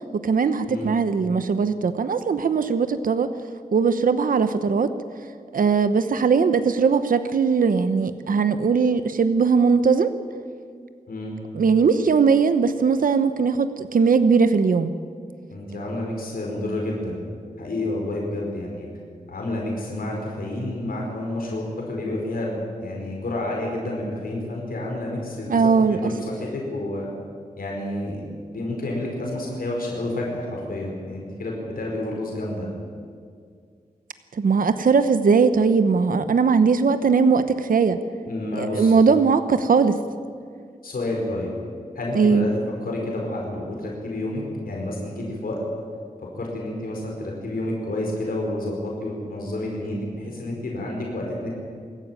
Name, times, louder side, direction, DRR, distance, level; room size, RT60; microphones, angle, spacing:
voice 1, 0.1-3.3 3.7-4.9 5.5-10.1 11.5-14.9 25.5-26.1 34.3-38.0 38.6-40.0 42.1-42.5, right 5 dB, 70° right, 11 dB, 0.9 m, -19 dB
voice 2, 15.5-17.2 17.6-18.9 19.3-27.1 27.6-28.2 28.5-32.7 38.2-39.0 40.8-41.5 41.9-45.6 46.3-51.5, left 1 dB, 85° left, -1 dB, 4.7 m, -29 dB
24.0 x 14.0 x 9.0 m, 2.1 s
wide cardioid pair, 105°, 15 cm